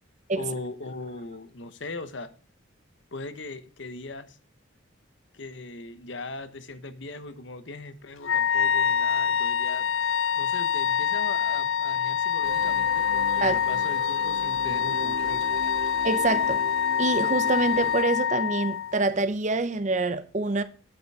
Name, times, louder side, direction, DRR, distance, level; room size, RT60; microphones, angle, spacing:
voice 1, 0.3-2.3 3.1-4.4 5.3-9.9 10.3-15.4, left 3 dB, 65° left, 1.0 m, -39 dB
Wind instrument woodwind instrument, 8.2-19.0, left 8 dB, 80° left, 0.5 m, -25 dB
sound 1, 12.4-18.0, right 4 dB, 85° right, 0.6 m, -39 dB
voice 2, 16.0-16.6 17.0-20.6, right 3 dB, 35° right, 0.6 m, -26 dB
8.8 x 6.8 x 4.7 m
head